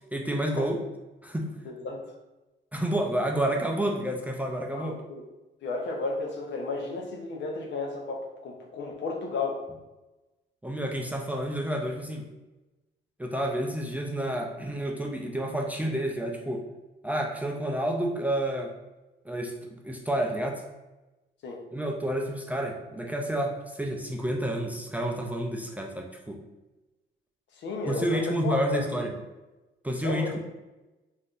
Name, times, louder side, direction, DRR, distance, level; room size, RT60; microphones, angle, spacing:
voice 1, 0.1-0.8 1.2-1.6 2.7-5.0 10.6-12.3 13.2-16.7 17.0-18.7 19.3-20.7 21.7-26.4 27.8-29.1 29.8-30.4, right 1 dB, 10° right, 1 dB, 0.4 m, -29 dB
voice 2, 1.7-2.1 4.7-5.2 5.6-9.6 21.4-21.6 27.6-28.8 30.0-30.4, left 3 dB, 65° left, 2 dB, 0.7 m, -33 dB
3.4 x 2.6 x 2.4 m, 1.1 s
cardioid pair, 90°, 20 cm